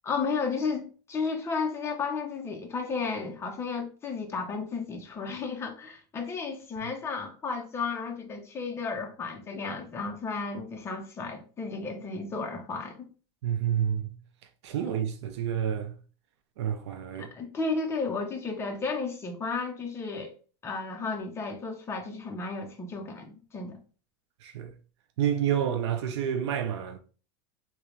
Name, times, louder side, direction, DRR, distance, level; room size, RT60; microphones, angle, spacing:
voice 1, 0.0-13.1 17.3-20.3 20.6-23.8, left 4 dB, 20° left, 0.8 m, -33 dB
voice 2, 13.4-14.1 14.6-15.9 16.6-17.3 24.4-24.7 25.2-27.0, right 9 dB, 85° right, 0.5 m, -29 dB
3.3 x 3.0 x 3.2 m
supercardioid pair, 140°, 14 cm